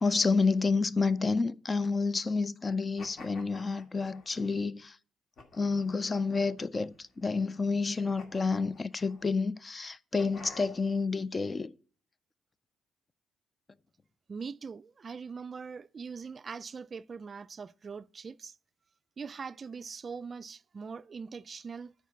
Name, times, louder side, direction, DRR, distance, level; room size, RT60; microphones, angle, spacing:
voice 1, 0.0-4.9 5.5-11.7, left 4 dB, 30° left, 0.4 m, -29 dB
sound 1, 3.0-4.5 5.4-5.9 6.6-7.3 8.2-9.3 10.2-11.0, left 3 dB, 50° left, 2.1 m, -51 dB
voice 2, 14.3-18.6 19.2-21.9, right 5 dB, 40° right, 0.3 m, -42 dB
9.1 x 4.7 x 6.9 m
cardioid pair, 90°, 0 cm